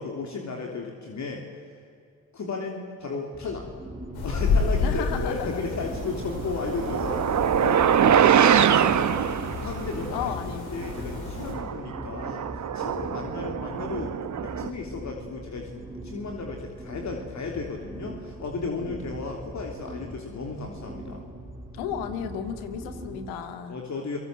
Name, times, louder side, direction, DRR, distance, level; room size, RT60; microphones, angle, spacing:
voice 1, 0.0-1.4 2.3-3.7 4.2-9.3 9.6-10.3 10.7-12.5 12.7-21.2 23.7-24.2, left 4 dB, 45° left, 1 dB, 3.3 m, -34 dB
sound 1, 3.3-23.3, right 1 dB, 10° right, 3.4 m, -41 dB
sound 2, 4.1-11.5, left 4 dB, 75° left, 5.8 m, -31 dB
voice 2, 4.8-5.6 10.1-10.9 21.7-23.8, left 8 dB, 90° left, 8 dB, 2.1 m, -34 dB
sound 3, 6.1-10.0 10.8-10.9 11.4-14.7, right 8 dB, 45° right, 1.3 m, -23 dB
30.0 x 19.0 x 7.8 m, 2.4 s
supercardioid pair, 70°, 39 cm